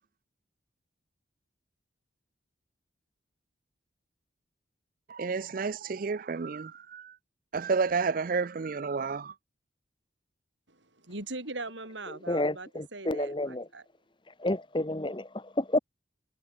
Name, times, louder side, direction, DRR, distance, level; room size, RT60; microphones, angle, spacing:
voice 1, 5.1-7.1 7.5-9.3, right 4 dB, 45° right, 0.4 m, -30 dB
voice 2, 10.7-13.8, right 2 dB, 75° right, 5.0 m, -41 dB
voice 3, 12.1-13.7 14.4-15.8, left 1 dB, 25° left, 1.2 m, -30 dB
head